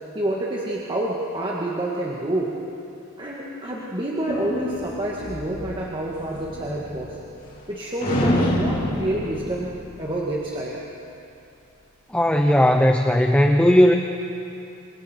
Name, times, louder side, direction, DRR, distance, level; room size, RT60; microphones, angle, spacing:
voice 1, 0.1-2.6 3.2-7.2 7.7-9.7 10.0-10.8, right 1 dB, 25° right, -4 dB, 1.9 m, -28 dB
sound 1, 4.3-7.7 8.0-10.7, equal, 40° left, 3.7 m, -28 dB
voice 2, 12.1-13.9, equal, 5° left, 4 dB, 0.7 m, -16 dB
29.5 x 26.0 x 4.6 m, 2.7 s
head